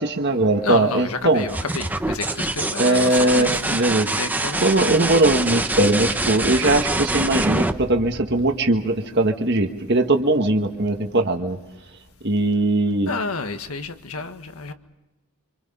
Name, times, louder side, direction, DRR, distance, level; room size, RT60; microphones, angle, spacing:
voice 1, 0.0-1.4 2.8-4.1 4.6-11.6 12.2-13.1, right 2 dB, 50° right, 1.6 m, -20 dB
voice 2, 0.6-4.9 13.1-14.7, left 4 dB, 80° left, 1.6 m, -30 dB
sound 1, 1.4-8.9 10.7-11.3, right 2 dB, 10° right, 1.0 m, -25 dB
26.5 x 25.5 x 5.5 m
head